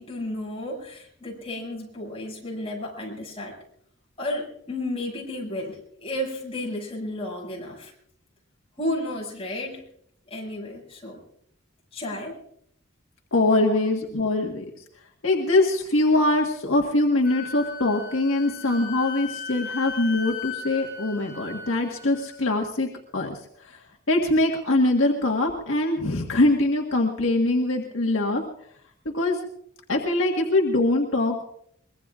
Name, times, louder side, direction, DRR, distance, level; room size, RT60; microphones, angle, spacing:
voice 1, 0.0-3.6 4.2-7.9 8.8-9.9 10.3-11.2 11.9-12.4 13.6-13.8, left 1 dB, 30° left, -1 dB, 6.5 m, -32 dB
voice 2, 13.3-14.6 15.2-23.4 23.6-23.8 24.1-28.4 29.1-29.4 29.9-31.4, left 2 dB, 75° left, 1 dB, 1.6 m, -23 dB
Wind instrument woodwind instrument, 17.2-22.4, left 5 dB, 55° left, 5.9 m, -37 dB
23.5 x 21.5 x 2.5 m, 0.68 s
head